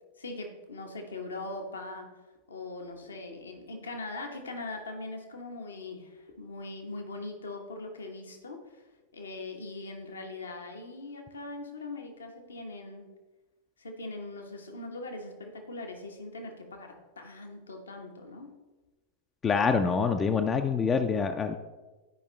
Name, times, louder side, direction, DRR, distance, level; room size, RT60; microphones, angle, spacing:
voice 1, 0.2-2.1 2.5-8.8 9.1-13.2 13.8-18.6, left 2 dB, 70° left, 3 dB, 1.1 m, -41 dB
voice 2, 19.4-21.6, left 5 dB, 20° left, 6 dB, 0.4 m, -26 dB
10.5 x 5.1 x 3.2 m, 1.2 s
figure-of-eight pair, 90°, 0 cm